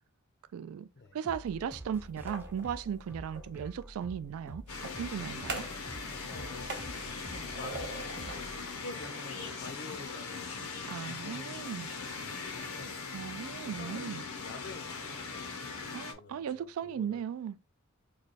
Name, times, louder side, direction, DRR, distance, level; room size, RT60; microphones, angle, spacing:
voice 1, 0.5-5.6 10.8-11.9 13.1-14.2 15.9-17.7, right 8 dB, 70° right, 0.3 m, -37 dB
sound 1, 1.2-9.6, equal, 10° right, 0.5 m, -48 dB
sound 2, 2.1-3.5 4.7-5.9 6.2-8.5 8.9-10.2, right 3 dB, 55° right, 0.8 m, -44 dB
sound 3, 4.7-16.1, left 4 dB, 85° left, 0.7 m, -40 dB
voice 2, 6.3-7.0 7.3-13.0 13.3-17.3, left 3 dB, 55° left, 0.6 m, -49 dB
3.2 x 2.2 x 4.0 m
head